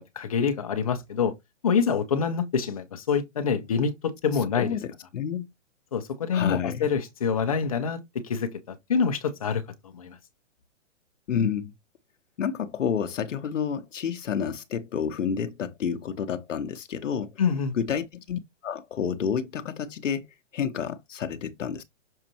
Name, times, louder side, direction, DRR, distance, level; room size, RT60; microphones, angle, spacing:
voice 1, 0.2-1.3 1.6-4.8 5.9-10.2 17.4-17.7, left 6 dB, 30° left, 0.9 m, -26 dB
voice 2, 4.5-5.5 6.3-6.9 11.3-11.7 12.4-17.3 17.7-20.3 20.5-21.8, left 7 dB, 75° left, 0.9 m, -29 dB
6.6 x 5.1 x 2.9 m
hypercardioid pair, 175°, 37 cm